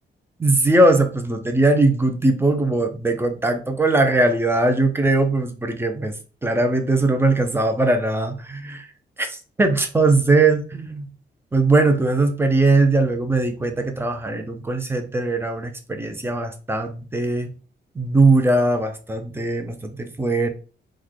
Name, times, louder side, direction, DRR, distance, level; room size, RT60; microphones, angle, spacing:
voice 1, 0.4-6.1 6.4-8.9 9.2-11.1 11.5-17.5 18.0-20.5, right 2 dB, 10° right, 6 dB, 0.4 m, -20 dB
3.1 x 2.2 x 3.7 m, 0.37 s
wide cardioid pair, 170°, 19 cm